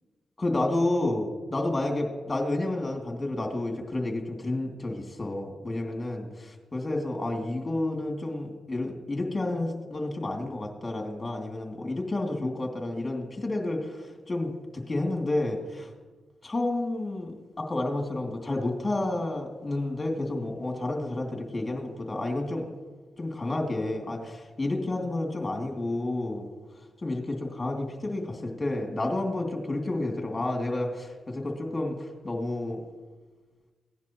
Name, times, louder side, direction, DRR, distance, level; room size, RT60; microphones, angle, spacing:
voice 1, 0.4-15.9 16.4-17.3 17.6-22.7 23.2-26.5 27.0-32.8, left 2 dB, 30° left, 2 dB, 2.7 m, -30 dB
16.5 x 10.5 x 3.1 m, 1.4 s
supercardioid pair, 50°, 0 cm